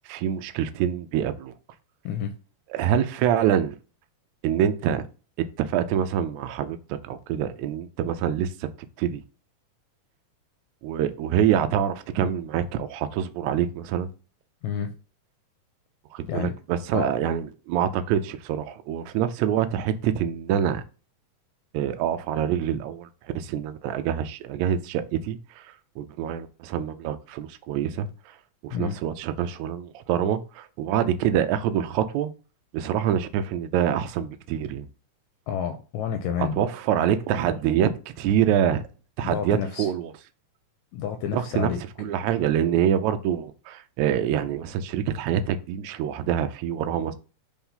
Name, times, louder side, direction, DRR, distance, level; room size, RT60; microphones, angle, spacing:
voice 1, 0.1-1.5 2.7-3.8 4.4-5.0 5.6-8.7 9.0-9.2 10.8-14.1 16.1-20.8 21.7-23.1 23.4-25.7 26.0-28.1 28.6-32.3 32.7-34.9 36.4-38.8 39.2-40.1 41.3-41.7 42.0-47.2, right 9 dB, 80° right, 1.8 m, -25 dB
voice 2, 14.6-14.9 16.3-16.5 16.9-17.1 28.7-29.0 35.5-36.6 39.2-39.9 40.9-41.8, left 8 dB, 80° left, 1.8 m, -29 dB
4.6 x 4.1 x 5.5 m
omnidirectional pair, 3.6 m